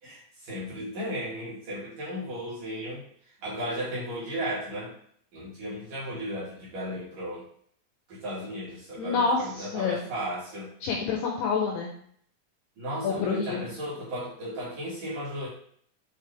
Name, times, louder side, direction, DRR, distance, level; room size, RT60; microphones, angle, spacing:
voice 1, 0.0-4.9 5.3-7.5 8.1-10.7 12.8-15.5, equal, 55° right, -8 dB, 2.7 m, -35 dB
voice 2, 9.0-10.0 10.8-11.9 13.0-13.7, left 5 dB, 80° left, 0 dB, 2.4 m, -28 dB
8.5 x 3.7 x 3.4 m, 0.62 s
omnidirectional pair, 5.7 m